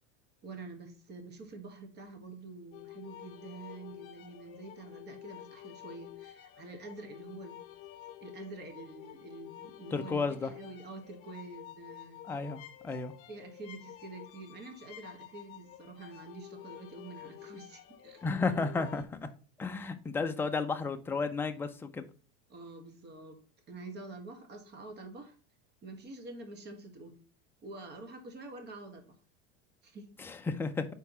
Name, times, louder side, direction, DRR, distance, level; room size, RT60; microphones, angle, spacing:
voice 1, 0.4-7.6 8.2-12.2 13.3-18.2 22.5-23.4 23.7-25.3 25.8-27.1 27.6-29.1 29.8-30.1, right 3 dB, 30° right, 5 dB, 1.4 m, -47 dB
sound 1, 2.7-19.0, left 13 dB, 40° left, 0.9 m, -50 dB
voice 2, 9.9-10.5 12.3-13.1 18.2-19.3 19.6-22.1 30.2-30.9, left 4 dB, 5° left, 6 dB, 0.3 m, -33 dB
4.6 x 4.6 x 5.4 m, 0.38 s
supercardioid pair, 135°, 35 cm